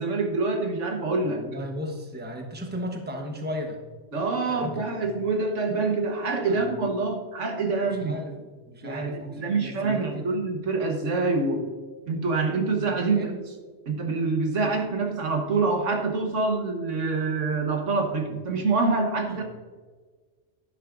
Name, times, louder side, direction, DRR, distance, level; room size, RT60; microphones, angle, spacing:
voice 1, 0.0-1.4 4.1-8.2 8.8-11.7 12.1-13.3 13.9-19.4, right 3 dB, 80° right, 2 dB, 1.6 m, -26 dB
voice 2, 1.2-3.8 4.5-5.1 5.7-5.8 6.4-7.1 7.8-10.3 12.8-13.4 14.6-14.7 19.3-19.4, equal, 10° right, 2 dB, 1.0 m, -36 dB
11.0 x 10.5 x 2.6 m, 1.4 s
omnidirectional pair, 1.2 m